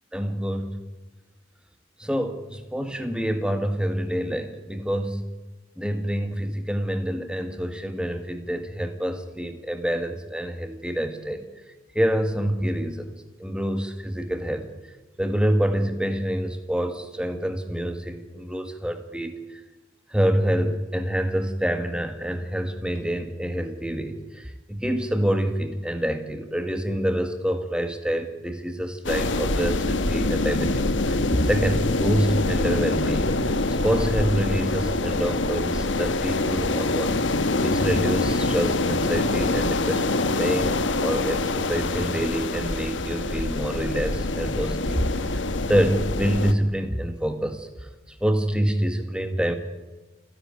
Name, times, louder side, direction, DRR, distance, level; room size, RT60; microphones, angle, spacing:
voice 1, 0.1-0.8 2.0-5.2 5.8-11.5 12.0-13.1 13.4-14.7 15.2-19.6 20.1-40.7 41.0-45.1 45.3-45.4 45.7-47.7 48.2-49.5, equal, 5° right, 7 dB, 1.9 m, -27 dB
sound 1, 29.0-46.5, left 2 dB, 70° left, 1.3 m, -25 dB
28.0 x 11.0 x 9.1 m, 1.1 s
head